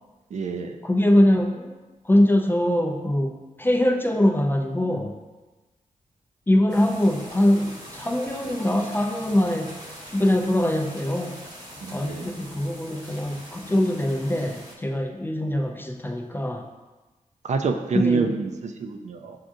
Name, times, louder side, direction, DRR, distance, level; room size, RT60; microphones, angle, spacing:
voice 1, 0.3-0.8 11.8-12.3 17.4-19.4, right 4 dB, 60° right, 5 dB, 0.4 m, -27 dB
voice 2, 0.8-1.8 2.0-5.1 6.5-9.7 10.1-11.3 11.9-16.7 17.9-18.3, left 1 dB, 15° left, 3 dB, 0.4 m, -23 dB
sound 1, 6.7-14.8, equal, 30° right, 1.0 m, -42 dB
7.2 x 2.4 x 2.6 m, 1.2 s
wide cardioid pair, 105°, 14 cm